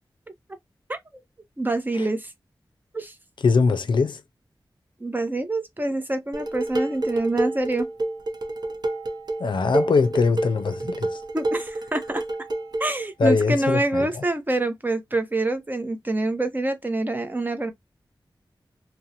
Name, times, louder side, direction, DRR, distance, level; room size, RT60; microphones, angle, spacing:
voice 1, 1.6-2.3 2.9-3.1 5.0-7.9 11.3-12.2 12.8-17.7, right 2 dB, 25° right, 0.7 m, -26 dB
voice 2, 3.4-4.2 9.4-11.2 13.2-14.1, left 4 dB, 75° left, 0.5 m, -21 dB
Dishes pots and pans, 6.3-12.9, right 2 dB, 60° right, 0.7 m, -28 dB
2.6 x 2.1 x 2.8 m
wide cardioid pair, 65°, 8 cm